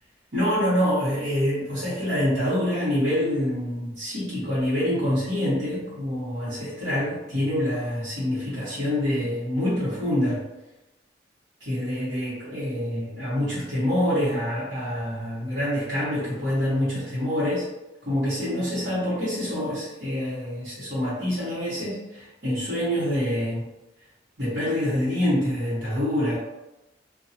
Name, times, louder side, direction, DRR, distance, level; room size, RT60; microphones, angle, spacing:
voice 1, 0.3-10.4 11.6-17.7 18.0-23.6 24.4-26.4, left 1 dB, 70° right, -12 dB, 1.2 m, -26 dB
2.6 x 2.2 x 2.7 m, 1.0 s
head